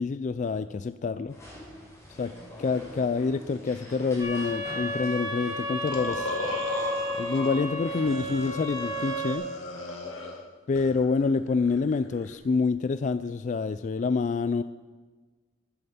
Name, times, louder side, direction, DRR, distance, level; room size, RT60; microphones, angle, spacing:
voice 1, 0.0-1.4 2.2-2.3 2.6-6.3 7.2-9.5 10.7-14.6, left 4 dB, 40° left, 12 dB, 0.3 m, -27 dB
sound 1, 1.3-8.5, left 1 dB, 15° left, 4.9 m, -45 dB
sound 2, 4.2-9.3, equal, 20° right, 4.3 m, -33 dB
sound 3, 5.9-7.6 8.1-10.4 10.8-12.3, left 2 dB, 75° left, 2.4 m, -37 dB
11.0 x 10.0 x 7.0 m, 1.3 s
head